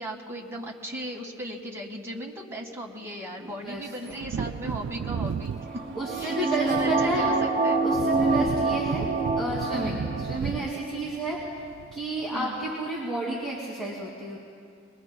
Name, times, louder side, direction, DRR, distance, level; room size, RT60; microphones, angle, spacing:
voice 1, 0.0-5.8 6.1-7.8 12.3-12.6, right 1 dB, 15° right, -2 dB, 1.6 m, -37 dB
voice 2, 3.4-3.8 4.1-4.2 5.9-7.3 7.8-9.0 9.4-11.6 11.9-14.4, right 2 dB, ahead, -7 dB, 2.4 m, -31 dB
Wind / Thunder, 4.1-12.3 12.6-12.7, right 6 dB, 70° right, 0.3 m, -35 dB
sound 1, 5.6-10.4 10.7-10.8, right 3 dB, 40° right, 2.4 m, -26 dB
24.0 x 21.0 x 2.2 m, 2.4 s
head